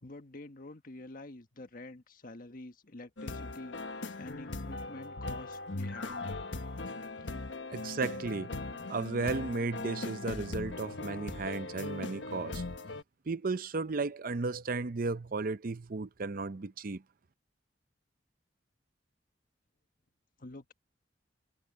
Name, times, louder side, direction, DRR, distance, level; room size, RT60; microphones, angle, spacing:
voice 1, 0.0-6.4 7.2-7.4 7.6-7.8 20.4-20.7, left 2 dB, 50° left, 1.4 m, -48 dB
sound 1, 3.2-13.0, left 2 dB, 85° left, 1.3 m, -39 dB
voice 2, 7.7-8.6 8.9-12.6 13.3-17.0, right 3 dB, 50° right, 0.6 m, -34 dB
head